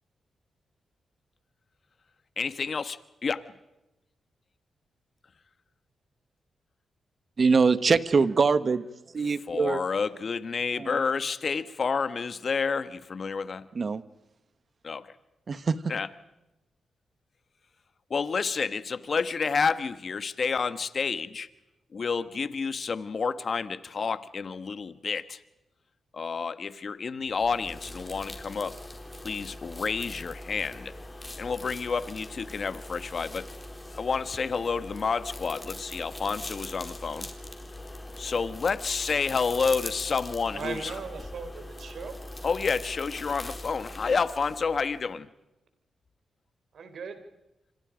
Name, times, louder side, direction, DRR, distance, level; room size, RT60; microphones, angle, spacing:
voice 1, 2.4-3.4 9.5-13.7 14.8-15.1 15.9-16.1 18.1-21.5 21.9-25.4 26.1-28.8 29.2-30.9 31.4-33.4 34.0-37.3 38.2-40.9 42.4-45.3, left 5 dB, 55° left, 13 dB, 1.4 m, -29 dB
voice 2, 7.4-8.8 9.1-9.8 10.8-11.0 13.7-14.0 15.5-15.9, right 4 dB, 50° right, 14 dB, 1.3 m, -23 dB
sound 1, 27.3-45.1, left 1 dB, 20° left, 4.4 m, -42 dB
voice 3, 40.5-42.2 46.7-47.2, right 5 dB, 70° right, 9 dB, 3.9 m, -38 dB
28.5 x 26.0 x 5.1 m, 0.95 s
cardioid pair, 65°, 0 cm